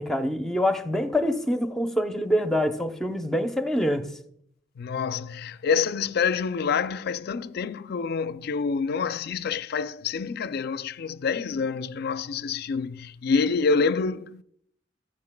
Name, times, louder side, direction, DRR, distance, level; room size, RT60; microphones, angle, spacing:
voice 1, 0.0-4.0, equal, ahead, 0.7 m, -25 dB
voice 2, 4.8-14.4, left 5 dB, 60° left, 0.4 m, -27 dB
14.0 x 9.4 x 2.2 m
head